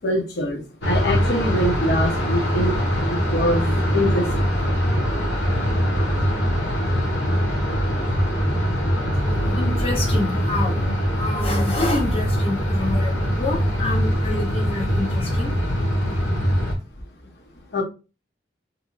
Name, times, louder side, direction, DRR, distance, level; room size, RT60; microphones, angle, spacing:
voice 1, 0.0-0.6 0.9-2.8 3.1-4.3 17.7-17.8, left 1 dB, 65° left, 0.8 m, -23 dB
sound 1, 0.8-16.7, equal, 85° left, 1.1 m, -22 dB
voice 2, 9.1-16.2, left 2 dB, 35° left, 0.8 m, -28 dB
2.8 x 2.6 x 2.5 m
head